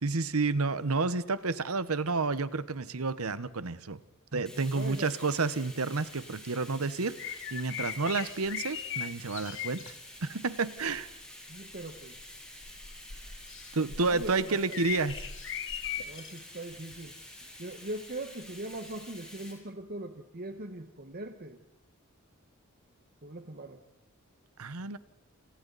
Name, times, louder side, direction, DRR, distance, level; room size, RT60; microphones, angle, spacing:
voice 1, 0.0-4.0 4.3-9.9 10.2-11.1 13.7-15.3 24.6-25.0, right 3 dB, 80° right, 1.1 m, -30 dB
Bathtub (filling or washing), 4.5-19.5, left 1 dB, 5° left, 7.9 m, -49 dB
voice 2, 4.7-5.1 11.5-12.1 13.8-14.8 16.1-17.1 17.6-21.6 23.2-23.8, right 1 dB, 45° right, 1.4 m, -41 dB
sound 1, 7.2-9.9 10.8-11.1 11.7-16.4 16.9-17.1 18.9-19.0, left 9 dB, 60° left, 1.8 m, -39 dB
29.5 x 28.5 x 4.1 m
head